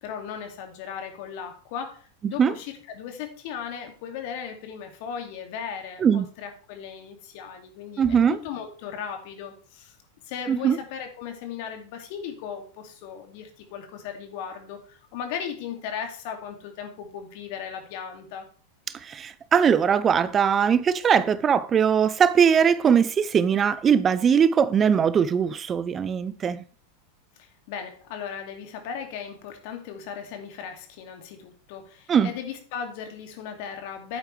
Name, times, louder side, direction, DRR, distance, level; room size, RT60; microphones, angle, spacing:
voice 1, 0.0-10.0 10.2-18.5 27.4-34.2, left 7 dB, 55° left, 2.4 m, -37 dB
voice 2, 8.0-8.4 10.5-10.8 18.9-26.6 32.1-32.3, right 7 dB, 25° right, 0.5 m, -20 dB
11.0 x 9.0 x 3.4 m
figure-of-eight pair, 90°, 0 cm